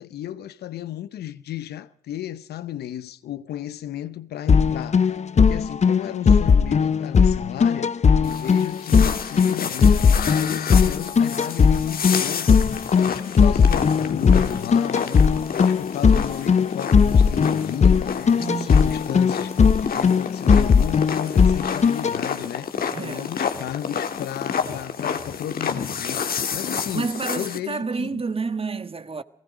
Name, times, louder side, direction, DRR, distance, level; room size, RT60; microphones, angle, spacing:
voice 1, 0.0-15.2 15.5-19.5 19.8-28.2, left 12 dB, 85° left, 0.9 m, -34 dB
sound 1, 4.5-22.2, left 6 dB, 45° left, 0.8 m, -18 dB
sound 2, 8.2-27.6, left 7 dB, 65° left, 2.0 m, -30 dB
voice 2, 18.4-18.9 22.9-23.3 26.7-29.2, right 4 dB, 35° right, 1.5 m, -30 dB
29.5 x 18.5 x 5.0 m
cardioid pair, 60°, 16 cm